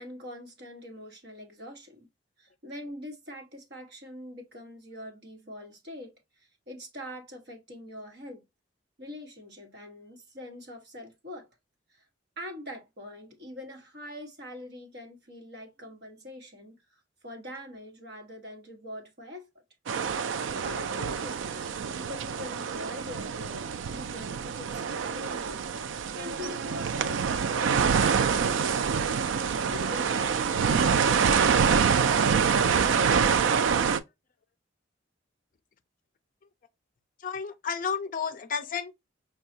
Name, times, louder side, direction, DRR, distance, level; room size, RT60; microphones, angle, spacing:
voice 1, 0.0-2.1 2.4-6.1 6.4-8.4 9.0-11.5 11.9-12.1 12.4-16.8 17.2-19.5 20.6-28.7 29.5-32.5, left 1 dB, 55° right, 1.2 m, -43 dB
sound 1, 19.9-34.0, right 6 dB, 75° right, 0.3 m, -26 dB
voice 2, 37.2-38.9, left 6 dB, 45° left, 0.4 m, -32 dB
5.5 x 2.3 x 2.6 m
head